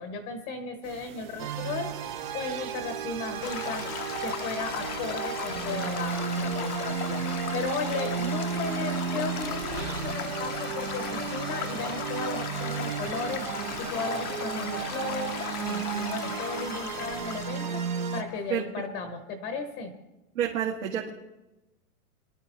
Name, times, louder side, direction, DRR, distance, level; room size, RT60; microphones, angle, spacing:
voice 1, 0.0-3.9 4.2-7.3 7.5-13.5 13.8-17.8 18.1-19.9, left 4 dB, 20° left, 6 dB, 1.0 m, -35 dB
sound 1, 0.8-17.4, right 5 dB, 80° right, 4.1 m, -47 dB
sound 2, 1.4-18.2, right 8 dB, 30° right, 0.8 m, -33 dB
Stream / Gurgling / Trickle dribble, 3.4-18.5, left 11 dB, 75° left, 1.0 m, -37 dB
voice 2, 20.4-21.1, right 9 dB, 60° right, -2 dB, 2.0 m, -28 dB
23.0 x 12.0 x 3.0 m, 1.0 s
hypercardioid pair, 165°, 45 cm